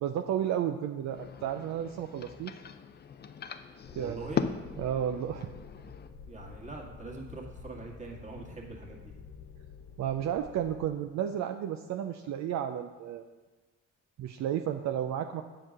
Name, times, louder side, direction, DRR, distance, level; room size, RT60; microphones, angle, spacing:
voice 1, 0.0-2.6 4.0-4.4 4.8-5.5 10.0-13.2 14.2-15.4, right 10 dB, 65° right, 6 dB, 0.5 m, -32 dB
sound 1, 1.0-6.1, left 7 dB, 35° left, 0.5 m, -39 dB
sound 2, 3.8-10.9, left 6 dB, 55° left, 0.8 m, -49 dB
voice 2, 3.9-4.4 6.3-9.1, right 3 dB, 25° right, -2 dB, 1.8 m, -43 dB
7.7 x 4.7 x 6.4 m, 1.2 s
cardioid pair, 90°, 30 cm